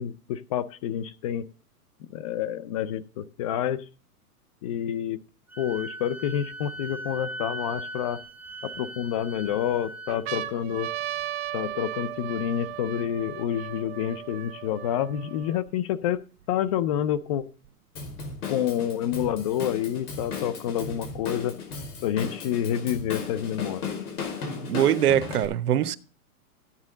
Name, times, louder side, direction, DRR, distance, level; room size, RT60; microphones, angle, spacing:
voice 1, 0.0-1.5 2.1-3.8 4.6-5.2 5.6-8.2 8.6-10.9 11.5-16.2 16.5-17.5 18.5-21.6 22.0-23.9, left 10 dB, 25° left, 0.4 m, -28 dB
Wind instrument woodwind instrument, 5.5-10.2, right 1 dB, 5° right, 0.7 m, -39 dB
sound 1, 5.8-5.9 6.5-7.8 8.5-9.3 9.7-9.8 10.1-15.7 16.4-16.5 16.7-17.7 18.6-19.7, right 12 dB, 40° right, 0.9 m, -36 dB
Drum kit / Drum, 18.0-25.5, left 5 dB, 70° left, 4.9 m, -36 dB
voice 2, 24.7-26.0, right 10 dB, 80° right, 1.0 m, -22 dB
13.5 x 9.8 x 3.8 m
hypercardioid pair, 135°, 45 cm